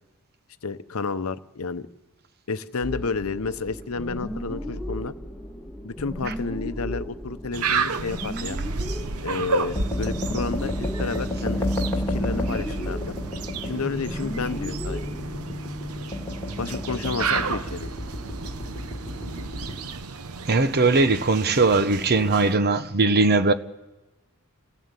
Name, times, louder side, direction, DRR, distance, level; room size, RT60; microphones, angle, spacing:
voice 1, 0.6-1.9 2.5-5.1 5.8-8.6 9.2-11.7 12.1-13.1 13.6-15.0 16.6-17.9, left 4 dB, 70° left, 0.8 m, -31 dB
sound 1, 2.8-15.3, equal, 5° right, 4.5 m, -35 dB
sound 2, 7.5-22.6, right 4 dB, 75° right, 0.9 m, -32 dB
sound 3, 9.8-19.7, left 1 dB, 10° left, 2.4 m, -31 dB
voice 2, 20.5-23.5, right 3 dB, 45° right, 0.9 m, -20 dB
26.0 x 15.0 x 8.2 m
head